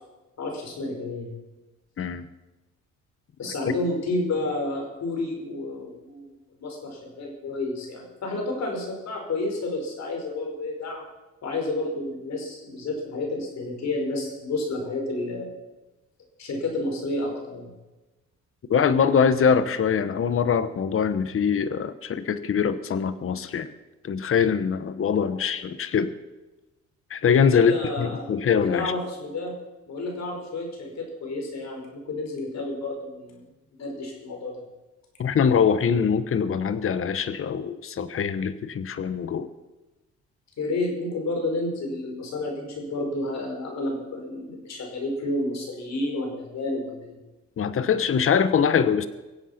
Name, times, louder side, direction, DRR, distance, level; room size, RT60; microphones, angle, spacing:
voice 1, 0.4-1.4 3.4-11.1 11.4-15.5 16.4-17.7 25.3-25.4 27.5-28.3 28.6-29.5 29.9-33.5 33.8-34.6 40.6-47.2, left 2 dB, 60° left, 1 dB, 5.3 m, -30 dB
voice 2, 18.7-23.7 24.0-26.1 27.1-27.7 28.0-28.9 35.2-39.5 47.6-49.1, left 7 dB, 45° left, 13 dB, 1.0 m, -23 dB
23.5 x 8.1 x 5.9 m, 1.1 s
cardioid pair, 90°, 30 cm